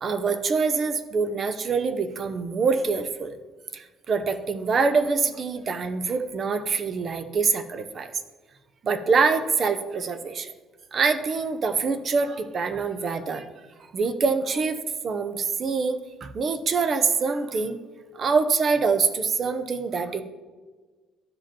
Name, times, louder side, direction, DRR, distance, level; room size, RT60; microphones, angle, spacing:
voice 1, 0.0-3.3 3.7-8.1 8.8-10.5 10.9-13.5 13.8-17.8 18.1-20.2, right 4 dB, 40° right, 9 dB, 0.6 m, -25 dB
13.0 x 5.1 x 2.9 m, 1.4 s
cardioid pair, 125°, 0 cm